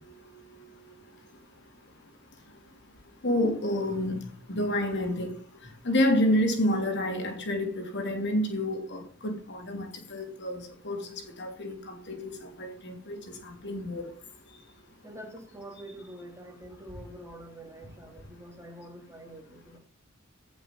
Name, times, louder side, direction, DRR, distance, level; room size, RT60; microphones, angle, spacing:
voice 1, 3.2-4.2 4.5-5.4 5.8-13.2 13.4-14.1, left 1 dB, 55° left, 3.2 m, -29 dB
voice 2, 15.0-19.8, right 1 dB, 15° right, 2.7 m, -46 dB
15.0 x 6.4 x 5.4 m
head